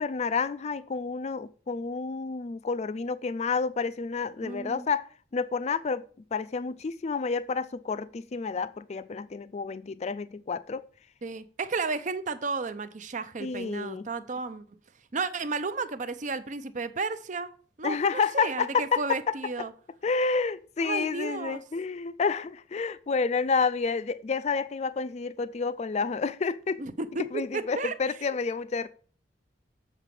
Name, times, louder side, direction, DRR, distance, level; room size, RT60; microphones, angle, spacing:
voice 1, 0.0-5.1 5.3-6.1 6.3-10.8 13.4-14.1 17.8-19.4 20.0-26.8 27.3-28.9, left 5 dB, 40° left, 0.4 m, -29 dB
voice 2, 4.4-4.9 11.2-14.8 15.1-17.5 17.8-19.7 20.8-21.6 26.8-27.9, right 4 dB, 45° right, 0.7 m, -33 dB
7.4 x 4.9 x 6.8 m
head